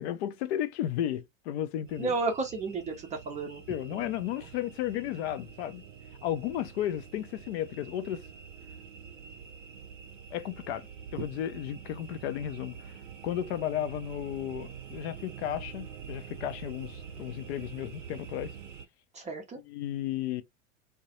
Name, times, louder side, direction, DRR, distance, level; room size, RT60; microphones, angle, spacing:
voice 1, 0.0-2.1 3.7-5.8 6.2-8.2 10.3-10.9 11.1-13.0 13.2-18.5 19.7-20.4, left 11 dB, 55° left, 0.5 m, -34 dB
sound 1, 1.9-18.9, right 7 dB, 80° right, 0.6 m, -46 dB
voice 2, 2.0-3.6 3.9-4.1 19.1-19.6, right 3 dB, 20° right, 0.5 m, -32 dB
2.3 x 2.1 x 2.7 m
hypercardioid pair, 90°, 39 cm